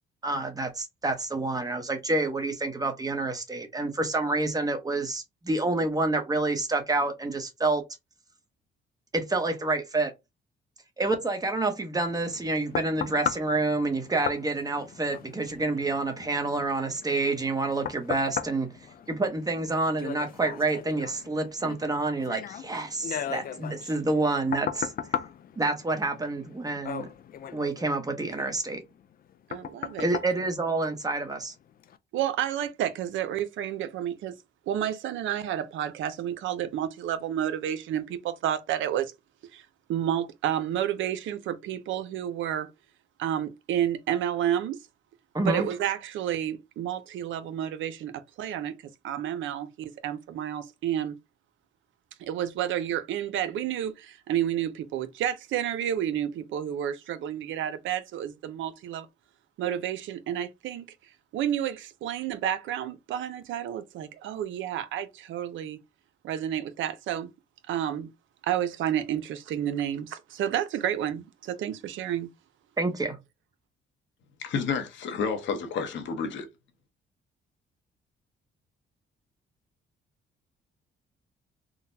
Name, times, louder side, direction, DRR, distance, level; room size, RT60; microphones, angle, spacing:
voice 1, 0.2-7.8 9.1-10.1 11.0-18.7 19.1-24.9 25.6-27.1 27.5-28.8 30.0-31.5 45.3-45.7 72.8-73.2, right 2 dB, 20° right, 0.9 m, -28 dB
sound 1, 12.1-31.3 31.8-32.0, left 9 dB, 50° left, 0.4 m, -38 dB
voice 2, 29.5-30.1 32.1-34.3 34.7-39.1 39.5-42.7 43.2-44.8 45.5-48.8 49.0-51.1 52.2-59.1 59.6-60.9 61.3-65.8 66.2-67.3 67.7-68.1 68.4-72.3, right 10 dB, 75° right, 0.5 m, -30 dB
voice 3, 74.4-76.5, left 5 dB, 70° left, 0.8 m, -30 dB
3.7 x 2.0 x 2.6 m
cardioid pair, 90°, 20 cm